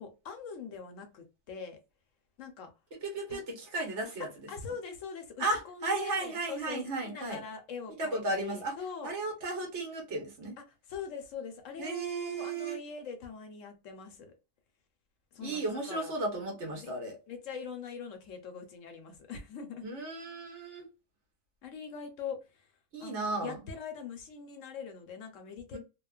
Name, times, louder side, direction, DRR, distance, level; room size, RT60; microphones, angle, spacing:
voice 1, 0.0-1.8 2.4-2.7 3.3-3.4 4.5-9.1 10.6-14.3 15.3-16.2 16.8-16.9 17.3-19.9 21.6-25.8, left 6 dB, 75° left, 1.0 m, -43 dB
voice 2, 3.0-4.5 5.4-7.4 8.0-8.7 9.0-10.6 11.8-12.8 15.4-17.2 19.8-20.8 22.9-23.6 25.7-25.8, right 2 dB, 60° right, 1.3 m, -34 dB
3.0 x 2.1 x 2.3 m
omnidirectional pair, 1.4 m